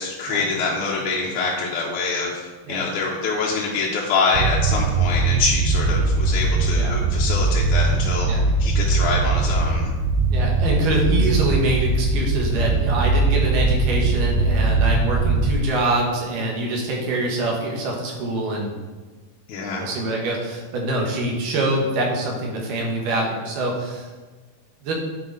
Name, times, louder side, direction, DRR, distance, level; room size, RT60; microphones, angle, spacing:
voice 1, 0.0-2.4 2.7-8.3 8.6-9.9 19.5-19.9, left 4 dB, 70° left, -4 dB, 1.9 m, -25 dB
sound 1, 4.3-15.6, right 3 dB, 80° right, 2.0 m, -20 dB
voice 2, 10.3-18.8 19.8-24.1 24.8-24.9, right 1 dB, 65° right, -1 dB, 2.7 m, -24 dB
9.3 x 4.6 x 3.9 m, 1.3 s
omnidirectional pair, 4.3 m